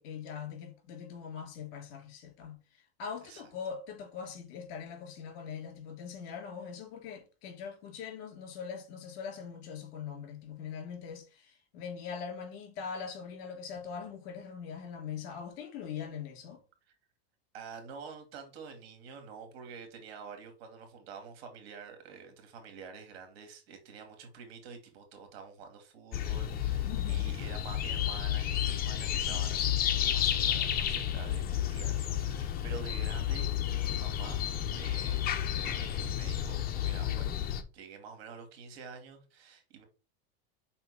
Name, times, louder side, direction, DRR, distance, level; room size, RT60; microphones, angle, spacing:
voice 1, 0.0-16.6 26.8-27.3, left 6 dB, 55° left, 3.1 m, -42 dB
voice 2, 17.5-34.4 34.7-37.3 37.7-39.8, right 6 dB, 75° right, 2.6 m, -48 dB
sound 1, 26.1-37.6, left 10 dB, 30° left, 1.0 m, -31 dB
5.7 x 4.4 x 5.7 m
supercardioid pair, 150°, 31 cm